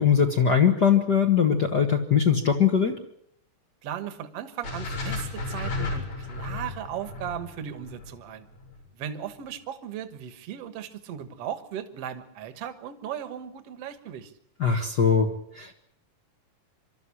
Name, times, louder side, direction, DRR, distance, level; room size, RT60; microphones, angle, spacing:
voice 1, 0.0-3.0 14.6-15.7, left 7 dB, 45° left, 3 dB, 1.5 m, -21 dB
voice 2, 3.8-8.5 8.9-14.3, right 9 dB, 55° right, 11 dB, 2.3 m, -37 dB
sound 1, 4.6-8.8, left 3 dB, 80° left, 6.6 m, -33 dB
25.0 x 13.0 x 9.9 m, 0.71 s
omnidirectional pair, 3.5 m